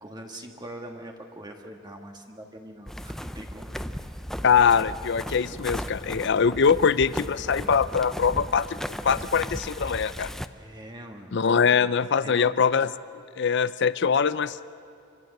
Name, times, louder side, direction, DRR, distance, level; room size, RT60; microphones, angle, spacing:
voice 1, 0.0-3.9 10.5-11.4 12.2-12.5, right 1 dB, 20° right, 3 dB, 1.6 m, -42 dB
sound 1, 2.9-10.5, equal, ahead, 0.6 m, -36 dB
voice 2, 4.4-8.8 9.0-10.3 11.3-12.9 13.4-14.6, left 6 dB, 60° left, 16 dB, 0.5 m, -22 dB
27.0 x 25.5 x 6.6 m, 2.5 s
head